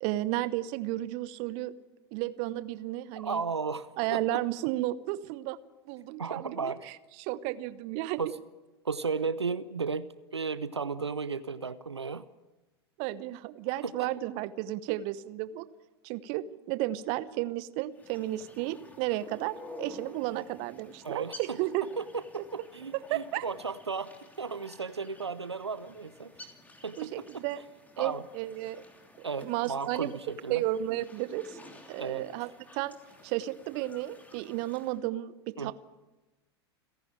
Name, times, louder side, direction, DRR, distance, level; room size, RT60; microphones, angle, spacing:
voice 1, 0.0-1.7 2.1-3.4 4.0-5.6 5.9-8.3 13.0-15.6 16.0-21.9 23.1-23.4 27.0-27.6 28.0-28.8 29.2-30.2 30.5-31.6 31.9-33.0 33.2-35.7, right 15 dB, 45° right, 16 dB, 0.9 m, -33 dB
voice 2, 3.2-4.2 6.2-6.9 8.2-8.4 8.8-12.3 14.0-14.1 21.0-21.6 22.0-26.5 26.8-27.4 28.0-28.2 29.2-30.6 32.0-32.3 35.6-35.7, right 5 dB, 80° right, 16 dB, 0.7 m, -35 dB
sound 1, 17.9-35.0, left 2 dB, 10° left, 3.1 m, -52 dB
29.5 x 11.0 x 8.8 m, 1.1 s
figure-of-eight pair, 85°, 14 cm